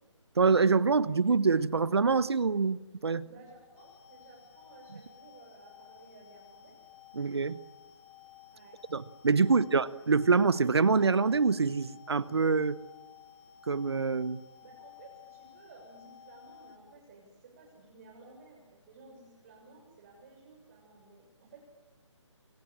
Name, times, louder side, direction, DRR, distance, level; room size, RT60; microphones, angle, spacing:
voice 1, 0.3-3.2 7.1-7.6 8.9-12.8 13.7-14.5, right 4 dB, 55° right, 17 dB, 1.2 m, -25 dB
voice 2, 3.2-6.8 8.5-8.8 14.6-21.6, right 3 dB, 30° right, -2 dB, 7.1 m, -55 dB
sound 1, 3.8-16.8, left 9 dB, 20° left, 1.8 m, -55 dB
29.5 x 25.5 x 7.5 m, 1.2 s
figure-of-eight pair, 145°, 16 cm